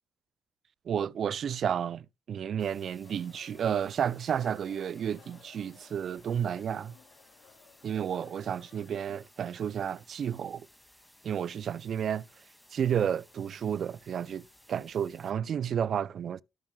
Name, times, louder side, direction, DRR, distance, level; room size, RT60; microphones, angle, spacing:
voice 1, 0.9-6.9 7.8-10.7 11.2-12.3 12.7-14.4 14.7-16.4, right 8 dB, 60° right, 0.4 m, -31 dB
sound 1, 2.6-15.3, left 1 dB, 5° left, 2.2 m, -60 dB
sound 2, 3.0-8.9, left 7 dB, 70° left, 2.6 m, -58 dB
17.5 x 5.9 x 2.3 m
cardioid pair, 90°, 0 cm